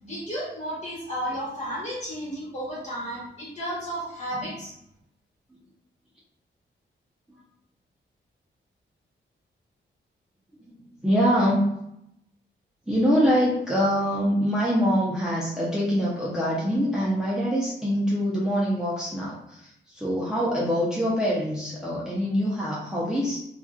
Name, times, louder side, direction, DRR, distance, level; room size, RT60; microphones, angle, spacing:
voice 1, 0.0-4.7, equal, 35° left, -6 dB, 1.4 m, -33 dB
voice 2, 10.7-11.6 12.9-23.4, equal, 5° right, -6 dB, 0.6 m, -24 dB
2.4 x 2.4 x 2.4 m, 0.79 s
cardioid pair, 75°, 20 cm